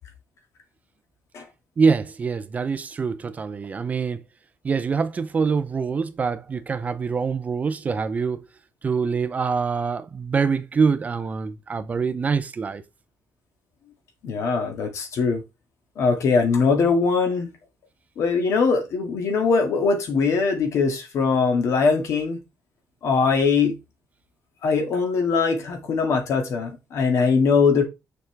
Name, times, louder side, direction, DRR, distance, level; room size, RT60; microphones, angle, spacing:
voice 1, 1.8-4.2 4.6-8.5 8.8-12.8, right 5 dB, 25° right, 0.5 m, -24 dB
voice 2, 14.2-15.4 16.0-17.5 18.2-22.4 23.0-23.8 24.6-27.8, left 5 dB, 60° left, 2.1 m, -21 dB
6.7 x 6.0 x 3.4 m
cardioid pair, 175°, 6 cm